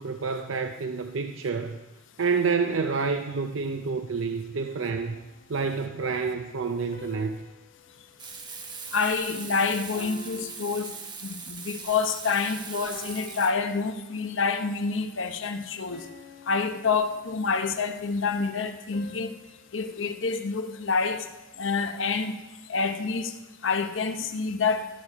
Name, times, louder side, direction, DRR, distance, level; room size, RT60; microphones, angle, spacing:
voice 1, 0.0-1.8 2.2-5.2 5.5-7.4, right 5 dB, 70° right, 0.6 m, -28 dB
sound 1, 4.6-5.9 6.9-9.4 9.9-11.6 12.2-12.5 12.9-14.5 14.9-15.2 15.9-17.8 18.9-21.3, left 2 dB, 50° left, 1.9 m, -51 dB
Frying (food), 8.2-13.5, right 5 dB, 20° right, 0.9 m, -40 dB
voice 2, 8.9-10.9 11.2-16.0 16.5-19.4 19.7-21.3 21.6-22.4 22.7-23.3 23.6-24.9, left 4 dB, 65° left, 0.9 m, -27 dB
13.5 x 8.2 x 4.9 m
head